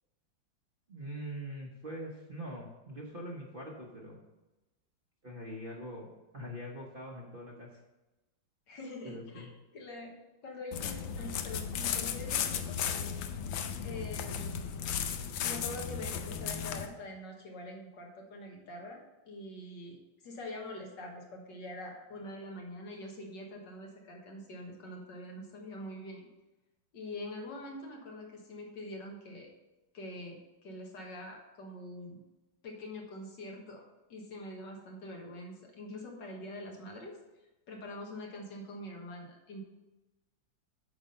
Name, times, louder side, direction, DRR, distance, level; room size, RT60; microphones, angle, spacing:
voice 1, 0.9-4.2 5.2-7.7 9.0-9.5, equal, 35° right, -2 dB, 1.0 m, -43 dB
voice 2, 8.7-10.2 10.4-13.0 13.8-14.9 15.4-19.0 19.3-26.2 26.9-29.5 29.9-32.2 32.6-33.8 34.1-37.2 37.7-39.6, left 1 dB, 70° left, 0 dB, 2.0 m, -44 dB
sound 1, 10.7-16.9, left 8 dB, 85° left, 1.4 m, -35 dB
8.2 x 5.3 x 5.5 m, 1.0 s
omnidirectional pair, 2.0 m